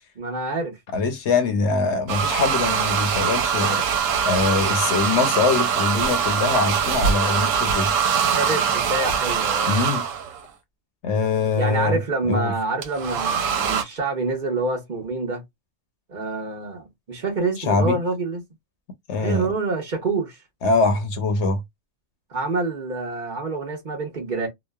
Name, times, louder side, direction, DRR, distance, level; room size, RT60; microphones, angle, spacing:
voice 1, 0.2-0.8 8.4-9.8 11.6-15.4 16.1-18.4 19.2-20.4 22.3-24.5, right 3 dB, 45° right, 0.9 m, -27 dB
voice 2, 0.9-7.9 9.7-10.0 11.0-12.0 12.2-12.5 17.6-18.0 19.1-19.5 20.6-21.6, left 4 dB, 70° left, 0.9 m, -23 dB
sound 1, 2.1-10.4 12.8-13.8, right 7 dB, 90° right, 1.0 m, -23 dB
3.0 x 2.1 x 2.2 m
omnidirectional pair, 1.3 m